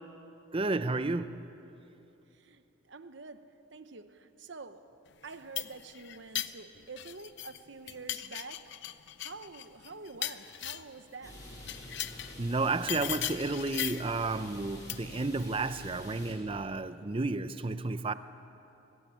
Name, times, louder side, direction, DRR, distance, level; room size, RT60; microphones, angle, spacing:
voice 1, 0.5-1.4 12.4-18.1, right 3 dB, 25° right, 0.5 m, -32 dB
voice 2, 2.4-4.9 5.2-8.7 9.2-11.4, right 4 dB, 60° right, 0.9 m, -47 dB
sound 1, 5.2-7.6 7.9-11.0 11.6-12.4 12.9-14.1 14.9-15.2, left 13 dB, 60° left, 0.6 m, -38 dB
sound 2, 11.2-16.3, left 1 dB, 20° left, 5.8 m, -47 dB
22.5 x 15.5 x 8.7 m
head